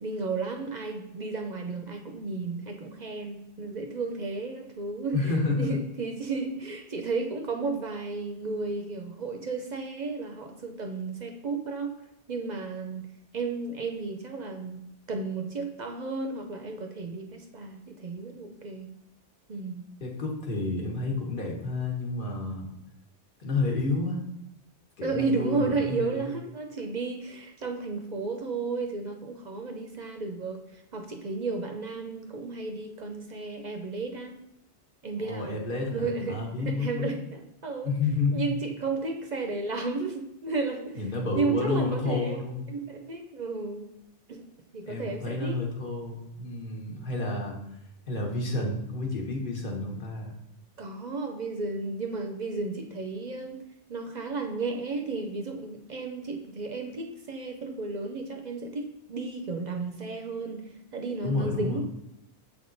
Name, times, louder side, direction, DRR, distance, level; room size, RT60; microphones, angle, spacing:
voice 1, 0.0-11.9 12.3-13.1 13.3-14.8 15.1-18.9 19.5-19.8 25.0-34.4 35.0-35.6 35.9-36.4 36.6-37.9 38.3-41.0 41.3-42.4 42.7-43.9 44.3-44.4 44.7-45.6 50.8-53.6 53.9-61.8, right 3 dB, 50° right, 4 dB, 0.6 m, -33 dB
voice 2, 5.1-5.8 20.0-22.7 23.4-24.2 25.0-26.3 35.2-37.1 37.8-38.6 41.0-42.7 44.9-47.6 48.1-50.3 61.2-61.8, left 3 dB, 50° left, -1 dB, 1.2 m, -30 dB
7.3 x 3.6 x 3.8 m, 0.84 s
omnidirectional pair, 1.2 m